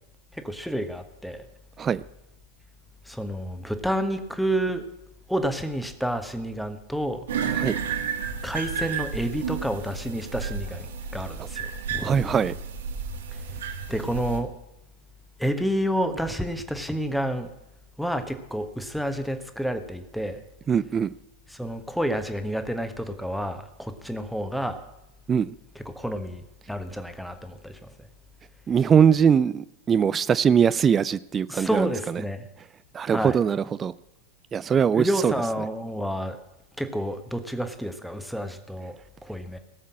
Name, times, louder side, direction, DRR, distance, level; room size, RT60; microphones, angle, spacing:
voice 1, 0.3-1.5 3.0-4.8 5.3-7.2 8.4-12.4 13.3-13.6 13.9-14.5 15.4-17.5 18.0-20.4 21.5-24.8 25.7-27.9 31.5-32.5 33.0-33.4 34.9-36.4 36.8-39.6, equal, ahead, 1.3 m, -29 dB
sound 1, 7.3-14.4, right 6 dB, 60° right, 1.6 m, -32 dB
voice 2, 12.0-12.5 20.7-21.1 25.3-25.5 28.7-31.9 32.9-33.9 34.5-35.3, right 7 dB, 20° right, 0.4 m, -21 dB
17.5 x 7.3 x 7.4 m
figure-of-eight pair, 90°, 0 cm